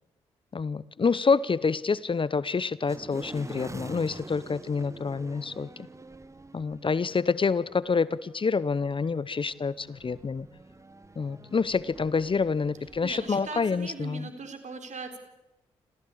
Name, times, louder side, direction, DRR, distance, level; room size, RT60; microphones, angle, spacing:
voice 1, 0.5-5.7 6.5-10.5 11.2-14.3, left 5 dB, 35° left, 20 dB, 0.8 m, -27 dB
sound 1, 2.9-13.9, right 2 dB, 20° right, 1.2 m, -47 dB
voice 2, 13.0-15.2, right 4 dB, 60° right, 7 dB, 3.9 m, -39 dB
27.5 x 15.0 x 8.6 m, 1.0 s
hypercardioid pair, 45°, 14 cm